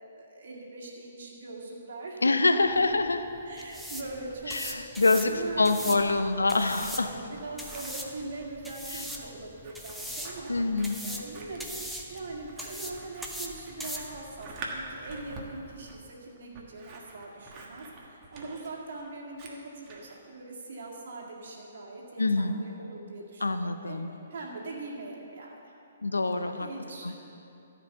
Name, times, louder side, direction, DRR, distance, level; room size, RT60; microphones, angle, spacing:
voice 1, 0.0-3.0 3.5-6.0 6.9-11.8 12.1-24.0 24.3-25.7 26.4-27.1, right 2 dB, 55° right, -1 dB, 2.1 m, -41 dB
voice 2, 2.2-3.2 4.5-7.1 8.9-9.0 10.5-11.0 22.2-22.6 23.4-24.1 26.0-26.7 27.0-27.1, left 3 dB, 75° left, 8 dB, 0.6 m, -25 dB
sound 1, 2.6-16.1, equal, ahead, 0.8 m, -42 dB
Scissors, 4.9-6.2 6.5-20.2, right 3 dB, 25° right, 1.4 m, -47 dB
13.5 x 5.2 x 6.9 m, 2.8 s
figure-of-eight pair, 125°, 0 cm